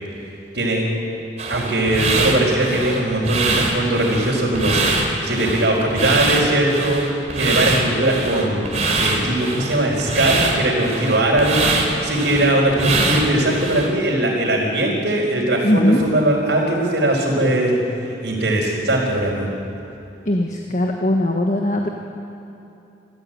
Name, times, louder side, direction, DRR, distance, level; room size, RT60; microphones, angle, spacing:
voice 1, 0.5-0.9 1.5-7.0 7.4-8.6 9.0-17.8 18.2-19.5, right 1 dB, 70° right, -7 dB, 4.5 m, -20 dB
sound 1, 1.4-13.9, right 3 dB, 40° right, 3.2 m, -23 dB
voice 2, 15.6-16.0 20.2-21.9, left 1 dB, 45° left, 2 dB, 1.5 m, -19 dB
27.0 x 15.0 x 9.1 m, 2.8 s
head